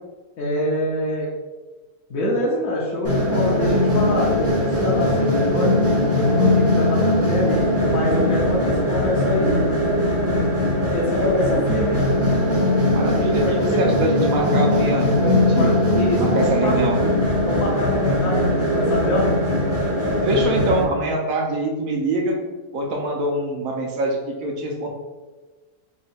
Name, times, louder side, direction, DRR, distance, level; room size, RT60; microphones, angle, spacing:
voice 1, 0.4-1.3 2.1-5.7 6.1-9.6 10.5-12.0 13.4-13.8 15.6-16.8 17.5-19.3, left 1 dB, 70° left, -7 dB, 1.2 m, -25 dB
sound 1, 3.0-20.8, left 1 dB, 15° right, 0.5 m, -20 dB
voice 2, 12.9-13.5 13.8-15.8 16.2-17.0 20.2-22.4 22.7-24.9, right 2 dB, 70° right, 0 dB, 1.0 m, -24 dB
3.6 x 2.1 x 4.1 m, 1.3 s
omnidirectional pair, 1.6 m